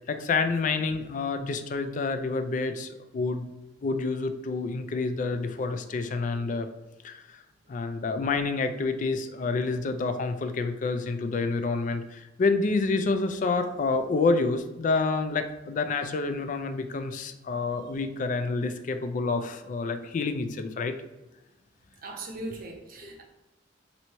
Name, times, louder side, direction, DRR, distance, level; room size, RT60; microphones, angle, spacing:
voice 1, 0.1-3.5 3.8-6.7 7.0-7.4 7.7-20.9 23.0-23.1, left 3 dB, 45° left, 8 dB, 0.3 m, -28 dB
voice 2, 22.0-23.2, right 2 dB, 50° right, 1 dB, 0.7 m, -39 dB
3.0 x 2.7 x 4.2 m, 1.0 s
head